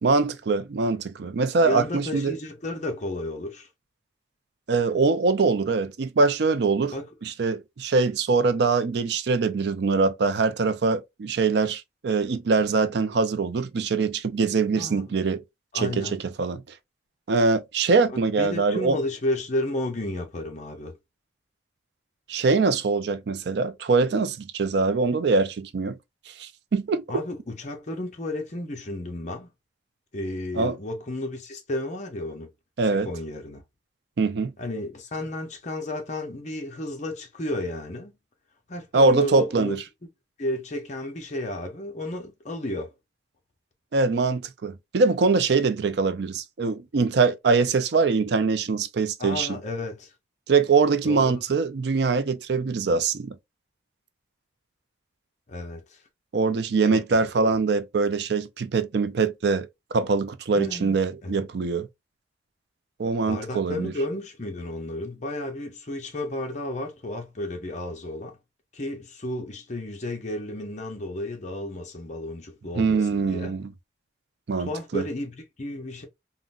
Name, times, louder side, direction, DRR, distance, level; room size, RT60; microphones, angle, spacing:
voice 1, 0.0-2.3 4.7-6.9 7.2-15.4 15.7-16.6 17.3-19.0 22.3-26.0 26.4-27.0 30.6-30.8 32.8-33.1 34.2-34.5 38.9-39.8 43.9-49.6 50.5-53.4 56.3-59.7 59.9-61.9 63.0-63.9 72.8-73.7 74.5-75.0, right 4 dB, 60° right, 0.4 m, -23 dB
voice 2, 1.6-3.7 6.9-7.1 14.8-15.1 15.7-16.2 18.1-21.0 27.1-29.5 30.1-32.5 32.9-33.6 34.6-38.1 38.7-39.8 40.4-42.9 49.2-50.1 51.0-51.4 55.5-56.0 56.9-57.2 57.4-57.6 60.5-61.5 63.3-68.4 68.7-73.5 74.6-76.1, left 1 dB, 40° left, 0.7 m, -32 dB
3.7 x 2.1 x 2.3 m
head